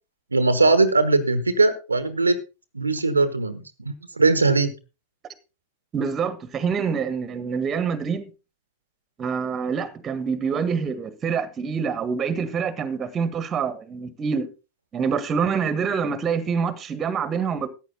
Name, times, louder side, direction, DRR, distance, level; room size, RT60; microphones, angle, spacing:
voice 1, 0.3-2.4 2.7-4.7, right 3 dB, 80° right, 1.2 m, -20 dB
voice 2, 5.9-8.3 9.2-14.5 14.9-17.7, right 6 dB, 25° right, 1.6 m, -26 dB
14.0 x 9.4 x 3.9 m
figure-of-eight pair, 90°, 0 cm